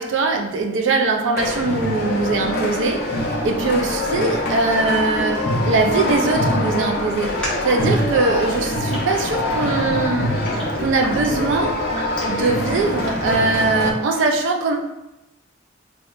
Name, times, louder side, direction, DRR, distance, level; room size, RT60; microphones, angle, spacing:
voice 1, 0.0-10.4 10.8-11.8 12.3-14.8, right 3 dB, 75° right, 3 dB, 0.4 m, -21 dB
sound 1, 1.4-13.9, left 1 dB, 50° left, 0.4 m, -24 dB
Raindrop, 7.1-13.3, equal, 5° left, 0.6 m, -37 dB
2.7 x 2.2 x 2.3 m, 0.93 s
head